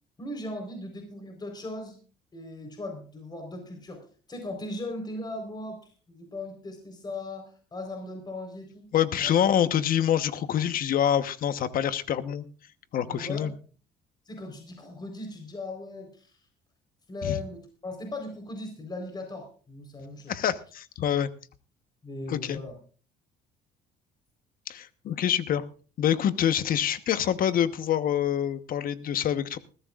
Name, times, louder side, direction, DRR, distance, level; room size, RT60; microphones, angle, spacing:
voice 1, 0.2-2.0 2.3-5.8 6.1-8.9 9.2-9.3 13.0-13.5 14.3-16.4 17.1-20.4 22.0-22.7, left 2 dB, 25° left, 4 dB, 4.2 m, -38 dB
voice 2, 8.9-12.5 12.9-13.5 17.2-17.4 20.3-21.3 22.3-22.6 24.7-25.6 26.0-29.6, left 10 dB, 55° left, 12 dB, 1.1 m, -26 dB
21.0 x 14.5 x 2.5 m, 0.39 s
cardioid pair, 110°, 17 cm